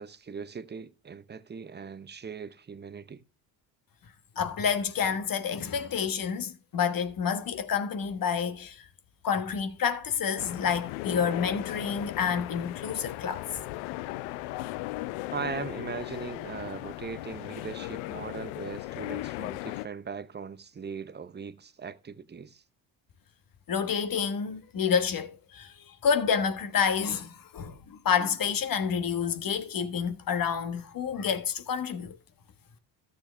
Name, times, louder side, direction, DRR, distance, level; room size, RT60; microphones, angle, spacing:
voice 1, 0.0-3.2 15.3-22.6, right 5 dB, 20° right, 0.8 m, -39 dB
voice 2, 4.4-8.9 9.2-13.4 23.7-32.2, left 7 dB, 45° left, 1.3 m, -29 dB
sound 1, 10.4-19.9, left 18 dB, 80° left, 0.6 m, -37 dB
13.5 x 6.9 x 3.3 m
supercardioid pair, 75°, 47 cm